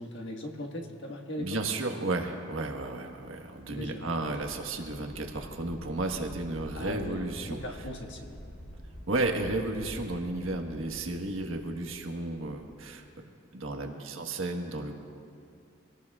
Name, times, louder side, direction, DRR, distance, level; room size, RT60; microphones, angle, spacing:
voice 1, 0.0-1.6 3.7-4.1 6.7-8.4, left 1 dB, 65° left, 1 dB, 1.6 m, -39 dB
voice 2, 1.4-7.6 9.1-13.0 13.5-15.0, right 2 dB, 90° right, 3 dB, 1.4 m, -33 dB
sound 1, 3.0-13.0, equal, 85° left, 3.3 m, -47 dB
26.0 x 18.0 x 2.4 m, 2.6 s
head